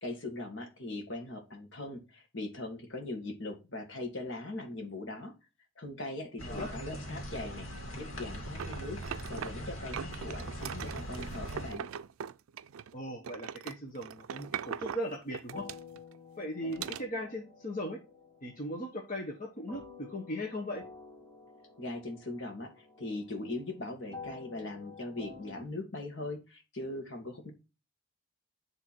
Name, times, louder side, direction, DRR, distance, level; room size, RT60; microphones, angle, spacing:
voice 1, 0.0-5.3 5.8-7.7 8.0-11.9 21.8-27.5, left 2 dB, 65° left, 4 dB, 1.9 m, -40 dB
sound 1, 6.4-11.7, equal, 85° left, 2.4 m, -41 dB
sound 2, 8.6-9.7 9.9-13.0 13.2-16.2 16.7-17.1, right 8 dB, 85° right, 0.4 m, -40 dB
voice 2, 12.9-15.7 16.4-18.0 18.4-20.8, equal, 40° left, 1 dB, 1.1 m, -38 dB
sound 3, 15.5-25.7, left 4 dB, 10° left, 1.9 m, -51 dB
9.8 x 3.5 x 4.4 m, 0.28 s
head